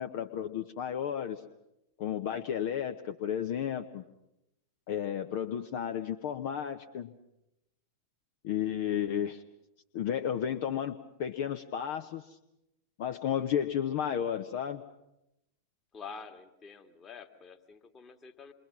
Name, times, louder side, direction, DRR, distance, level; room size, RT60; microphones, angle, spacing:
voice 1, 0.0-1.4 2.0-4.0 4.9-7.1 8.4-9.4 9.9-12.4 13.0-14.8, left 9 dB, 50° left, 7 dB, 1.0 m, -33 dB
voice 2, 15.9-18.5, left 5 dB, 25° left, 5 dB, 2.0 m, -47 dB
27.5 x 23.0 x 6.1 m, 0.87 s
figure-of-eight pair, 90°, 0 cm